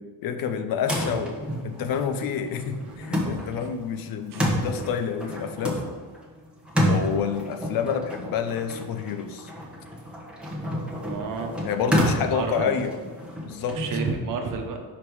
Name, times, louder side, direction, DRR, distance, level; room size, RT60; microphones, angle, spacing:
voice 1, 0.0-1.4 1.6-5.8 6.9-9.5 11.6-13.0 13.4-13.8, left 7 dB, 70° left, 8 dB, 0.7 m, -28 dB
sound 1, 0.8-14.1, equal, 5° right, 1.1 m, -29 dB
voice 2, 11.0-11.5 12.3-12.8 13.7-14.8, right 5 dB, 60° right, 4 dB, 1.0 m, -32 dB
5.2 x 5.1 x 4.7 m, 1.4 s
cardioid pair, 145°, 36 cm